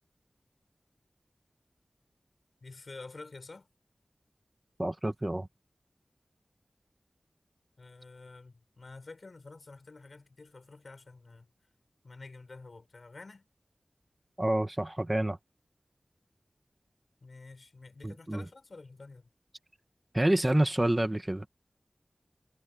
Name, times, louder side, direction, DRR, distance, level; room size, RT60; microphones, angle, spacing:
voice 1, 2.6-3.7 7.8-11.5 12.0-13.5 17.2-19.3, left 3 dB, 70° left, 5.7 m, -49 dB
voice 2, 4.8-5.5 14.4-15.4 18.0-18.4 20.1-21.5, right 1 dB, 25° right, 1.6 m, -28 dB
wide cardioid pair, 70°, 0 cm